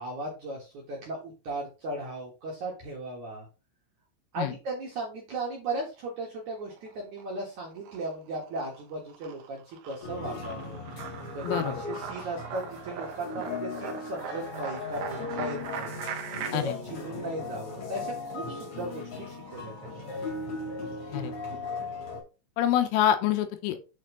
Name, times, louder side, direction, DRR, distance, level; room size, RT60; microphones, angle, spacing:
voice 1, 0.0-3.5 4.3-10.8 11.3-16.0 16.5-20.3, right 2 dB, 60° right, -2 dB, 2.1 m, -37 dB
sound 1, 6.6-7.4 7.7-16.5, right 7 dB, 85° right, 2.1 m, -40 dB
sound 2, 10.0-22.2, left 3 dB, 40° left, 2.5 m, -38 dB
voice 2, 11.4-11.8 16.5-16.8 21.1-21.3 22.6-23.8, left 11 dB, 85° left, 8 dB, 3.5 m, -26 dB
9.1 x 4.6 x 3.8 m, 0.31 s
omnidirectional pair, 5.8 m